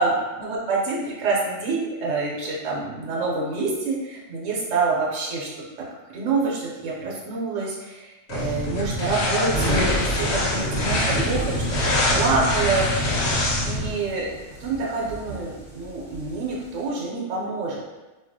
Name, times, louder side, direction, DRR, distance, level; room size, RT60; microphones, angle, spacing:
voice 1, 0.0-5.5 6.1-11.5 12.1-13.0 13.6-14.3 14.6-17.8, right 3 dB, 75° right, -4 dB, 0.9 m, -26 dB
sound 1, 8.3-13.9, left 1 dB, 65° left, 0.8 m, -24 dB
sound 2, 9.5-16.9, right 1 dB, 20° left, 0.9 m, -31 dB
3.9 x 2.3 x 2.6 m, 1.1 s
omnidirectional pair, 1.3 m